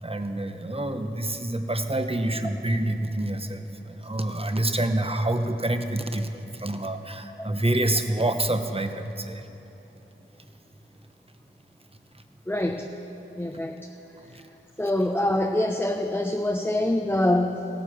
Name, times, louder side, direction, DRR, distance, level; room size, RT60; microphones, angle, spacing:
voice 1, 0.0-9.5 12.5-12.7 14.3-14.4, right 1 dB, 30° right, 7 dB, 0.9 m, -27 dB
voice 2, 12.5-12.9 13.4-13.7 14.8-17.7, left 1 dB, 10° left, 3 dB, 0.6 m, -25 dB
16.5 x 9.3 x 6.1 m, 3.0 s
wide cardioid pair, 45°, 21 cm